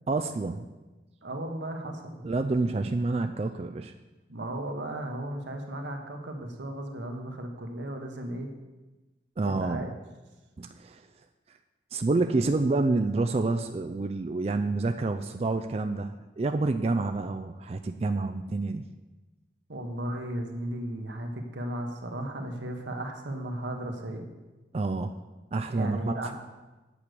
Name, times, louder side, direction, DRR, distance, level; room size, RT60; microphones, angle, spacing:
voice 1, 0.1-0.7 2.2-3.9 9.4-9.9 10.6-11.0 11.9-18.8 24.7-25.1 25.5-26.3, right 3 dB, 35° right, 7 dB, 0.3 m, -28 dB
voice 2, 1.2-2.2 4.3-8.5 9.4-9.9 19.7-24.3 25.7-26.3, right 1 dB, 85° right, 3 dB, 1.3 m, -35 dB
8.5 x 6.3 x 6.7 m, 1.1 s
head